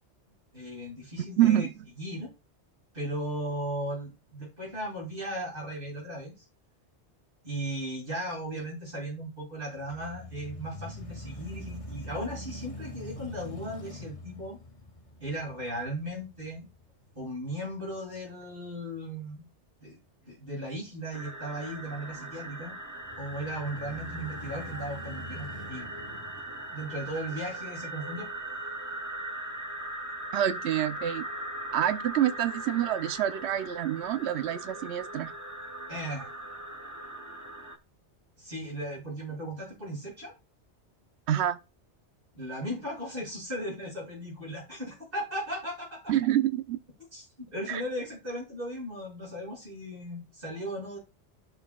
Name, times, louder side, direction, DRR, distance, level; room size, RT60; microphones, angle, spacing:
voice 1, 0.5-1.7 2.0-2.3 2.9-6.4 7.4-14.6 15.2-16.7 17.1-19.4 19.8-20.0 20.2-22.7 23.2-25.9 26.7-28.3 35.9-36.3 38.4-40.3 42.3-46.1 47.1-51.0, right 1 dB, 50° right, 6.9 m, -37 dB
voice 2, 1.4-1.7 30.3-31.2 31.7-35.3 41.3-41.6 46.1-46.8 47.7-47.8, right 11 dB, 70° right, 1.0 m, -27 dB
sound 1, 9.8-17.9 18.4-18.5 23.0-27.5, left 1 dB, 30° left, 1.3 m, -44 dB
sound 2, 21.1-37.8, right 1 dB, 15° right, 0.9 m, -40 dB
15.0 x 6.6 x 2.4 m
omnidirectional pair, 1.2 m